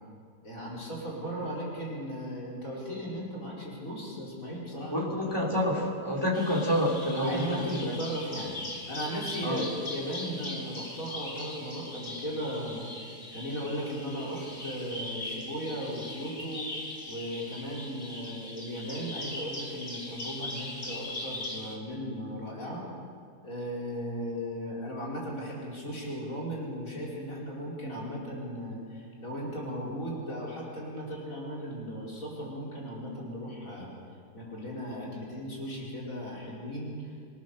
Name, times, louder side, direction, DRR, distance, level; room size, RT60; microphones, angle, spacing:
voice 1, 0.4-5.1 7.2-8.5 8.9-16.7 17.1-22.8 23.4-33.9 34.3-37.0, equal, 60° left, -5 dB, 5.4 m, -36 dB
voice 2, 4.9-8.0 9.4-9.7, equal, 15° left, -1 dB, 3.6 m, -28 dB
Bird vocalization bird call bird song, 6.3-21.8, left 1 dB, 45° left, 2.9 m, -40 dB
26.5 x 17.5 x 6.8 m, 2.2 s
omnidirectional pair, 1.6 m